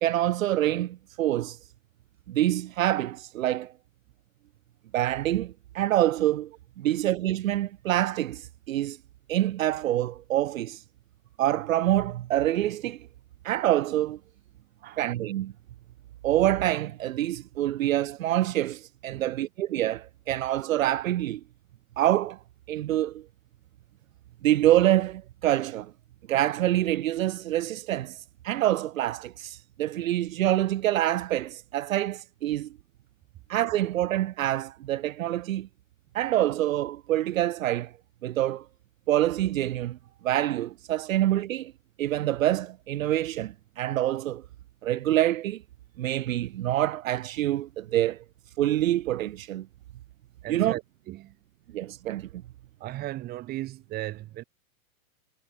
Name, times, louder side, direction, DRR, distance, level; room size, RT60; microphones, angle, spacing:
voice 1, 0.0-1.6 2.3-3.7 4.9-9.0 9.3-10.8 11.4-13.1 13.4-14.2 15.0-15.5 16.2-21.4 22.0-22.4 22.7-23.2 24.4-25.9 26.3-32.7 33.5-35.7 36.1-37.9 38.2-38.7 39.1-40.0 40.2-41.7 42.0-44.4 44.8-45.6 46.0-48.2 48.6-49.7 50.5-50.7 51.7-52.4, right 13 dB, 70° right, 1.4 m, -26 dB
voice 2, 50.4-51.4 52.8-54.4, right 16 dB, 20° right, 4.6 m, -37 dB
supercardioid pair, 175°, 42 cm